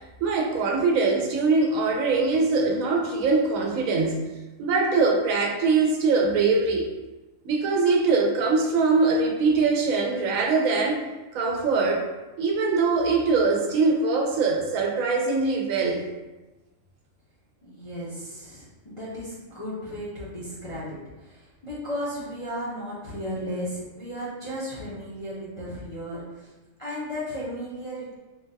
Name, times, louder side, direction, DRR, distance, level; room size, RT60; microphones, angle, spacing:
voice 1, 0.2-6.9 7.4-11.0 11.3-12.1 12.4-16.0, right 4 dB, 85° right, 0 dB, 1.0 m, -22 dB
voice 2, 17.6-26.5 26.8-28.2, equal, 40° left, -9 dB, 0.5 m, -35 dB
3.5 x 2.2 x 2.5 m, 1.1 s
omnidirectional pair, 1.4 m